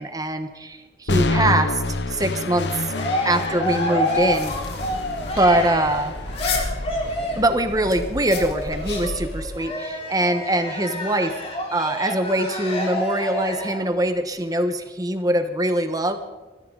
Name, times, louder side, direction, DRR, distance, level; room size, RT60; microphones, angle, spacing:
voice 1, 0.0-2.9 3.2-4.5 5.3-6.2 7.3-11.3 11.7-16.2, right 1 dB, 20° right, 8 dB, 1.1 m, -23 dB
sound 1, 1.1-9.1, left 2 dB, 90° left, 0.9 m, -29 dB
Cheering, 2.5-7.6 8.3-13.9, left 1 dB, 35° left, 3.5 m, -28 dB
sound 2, 4.1-9.6, left 2 dB, 70° left, 2.9 m, -32 dB
20.5 x 14.5 x 4.0 m, 1.2 s
head